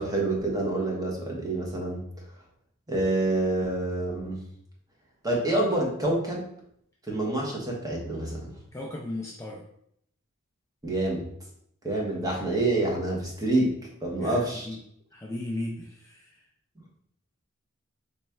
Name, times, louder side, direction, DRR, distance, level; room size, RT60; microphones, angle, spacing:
voice 1, 0.0-2.0 2.9-4.4 5.2-6.4 7.1-8.5 10.8-11.3 11.8-13.7 14.0-14.7, right 2 dB, 15° right, -2 dB, 0.8 m, -27 dB
voice 2, 8.7-9.6 12.1-12.4 14.2-14.8 15.1-16.4, left 1 dB, 15° left, -2 dB, 0.3 m, -36 dB
3.1 x 2.3 x 4.3 m, 0.69 s
head